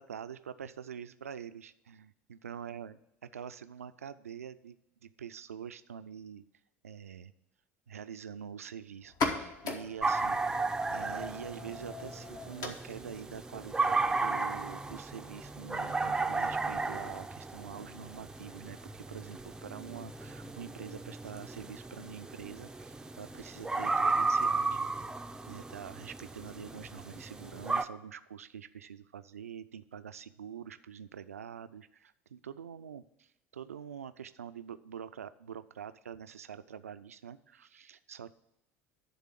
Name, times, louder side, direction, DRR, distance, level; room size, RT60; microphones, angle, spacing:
voice 1, 0.0-3.0 3.3-6.4 6.8-7.3 7.9-10.4 10.9-24.8 25.5-33.0 33.5-38.3, right 8 dB, 80° right, 12 dB, 0.3 m, -45 dB
sound 1, 9.0-16.5, left 3 dB, 50° left, 1.2 m, -41 dB
sound 2, 10.0-27.8, right 3 dB, 10° right, 0.4 m, -34 dB
11.0 x 3.6 x 7.4 m, 0.85 s
figure-of-eight pair, 65°, 8 cm